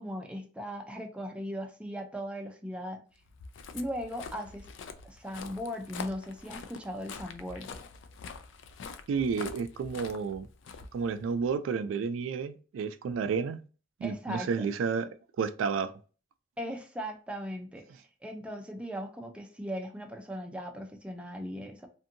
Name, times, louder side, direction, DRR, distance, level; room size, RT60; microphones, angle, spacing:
voice 1, 0.0-3.0 3.7-4.7 5.0-7.8 14.0-14.7 16.6-21.9, equal, 5° right, 0.4 m, -38 dB
Walk footsteps, 3.2-11.5, left 5 dB, 70° left, 0.4 m, -45 dB
voice 2, 9.1-10.5 10.9-13.6 14.0-15.1 15.4-15.9, right 5 dB, 90° right, 0.3 m, -31 dB
2.6 x 2.6 x 2.5 m
head